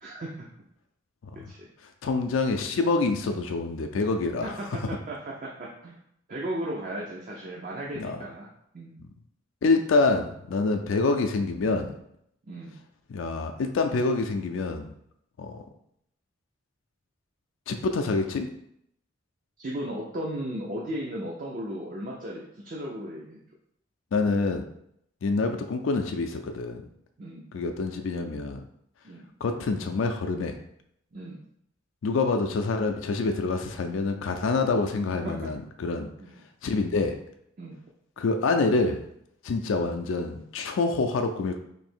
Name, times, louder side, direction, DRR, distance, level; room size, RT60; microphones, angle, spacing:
voice 1, 0.0-0.5 1.3-1.7 4.4-6.0 6.3-8.5 8.7-9.0 12.5-12.8 19.6-23.4 27.2-27.5 29.0-29.3 31.1-31.4 35.2-35.5 36.2-36.3 37.6-37.8, right 1 dB, 40° right, -2 dB, 0.5 m, -36 dB
voice 2, 2.0-4.5 8.0-8.2 9.6-11.9 13.1-14.9 15.4-15.6 17.7-18.5 24.1-24.6 25.2-26.8 27.5-28.7 29.4-30.6 32.0-36.1 36.6-37.2 38.2-39.0 39.4-41.6, left 3 dB, 75° left, 5 dB, 0.4 m, -26 dB
3.2 x 2.7 x 4.3 m, 0.74 s
head